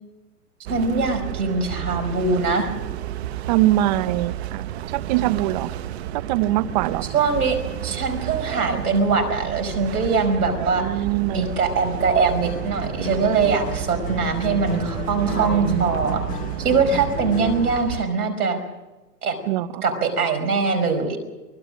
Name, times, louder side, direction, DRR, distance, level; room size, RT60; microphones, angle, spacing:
sound 1, 0.7-18.1, right 12 dB, 45° right, 1.2 m, -31 dB
voice 1, 0.7-2.7 7.1-7.6 7.8-10.9 11.3-16.2 16.6-18.6 19.2-19.4 19.8-21.2, right 4 dB, 70° right, 8 dB, 5.2 m, -22 dB
voice 2, 3.5-4.7 4.9-5.7 6.3-7.0 10.8-11.5 15.4-16.2 19.5-19.8, right 14 dB, 30° right, 16 dB, 0.8 m, -23 dB
Acoustic guitar, 12.4-17.8, left 6 dB, 15° left, 1.0 m, -34 dB
24.0 x 20.5 x 6.3 m, 1.1 s
hypercardioid pair, 135°, 46 cm